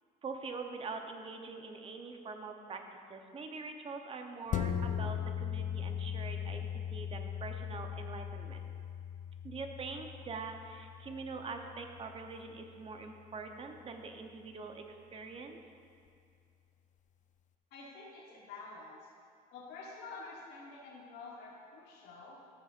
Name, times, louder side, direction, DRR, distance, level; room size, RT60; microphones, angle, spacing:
voice 1, 0.2-8.7 9.4-15.6, right 4 dB, 35° right, 5 dB, 0.8 m, -44 dB
sound 1, 4.5-13.3 13.8-13.9, left 9 dB, 50° left, 0.4 m, -39 dB
voice 2, 17.7-19.1 19.5-22.4, left 3 dB, 85° left, -3 dB, 1.3 m, -48 dB
13.5 x 6.5 x 2.5 m, 2.3 s
cardioid pair, 110°, 17 cm